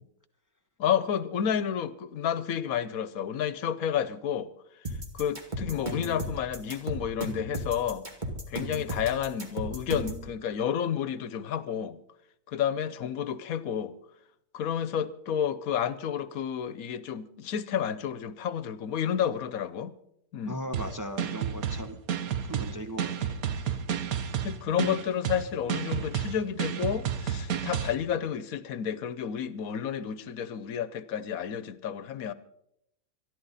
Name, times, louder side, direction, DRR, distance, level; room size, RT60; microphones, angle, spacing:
voice 1, 0.8-4.5 5.1-8.1 8.5-12.0 12.5-13.9 14.5-19.9 20.3-20.6 24.4-32.3, left 8 dB, 85° left, 15 dB, 1.2 m, -30 dB
sound 1, 4.8-10.2, right 1 dB, 35° right, 2.3 m, -35 dB
voice 2, 20.5-22.0 22.5-23.8, equal, 15° right, 5 dB, 0.7 m, -38 dB
sound 2, 20.7-27.9, right 8 dB, 90° right, 1.3 m, -31 dB
26.0 x 11.0 x 4.1 m, 0.76 s
omnidirectional pair, 1.5 m